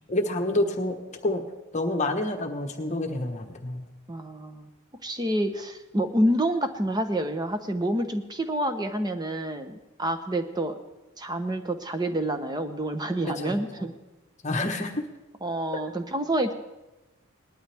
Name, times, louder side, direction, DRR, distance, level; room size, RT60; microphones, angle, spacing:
voice 1, 0.1-1.4 1.7-3.8 13.2-13.6 14.4-15.0, left 1 dB, 30° left, 4 dB, 1.2 m, -28 dB
voice 2, 4.1-4.7 5.0-10.8 11.2-13.9 14.8-14.9 15.4-16.5, right 1 dB, 20° right, 7 dB, 0.9 m, -28 dB
19.5 x 12.0 x 3.5 m, 1.0 s
head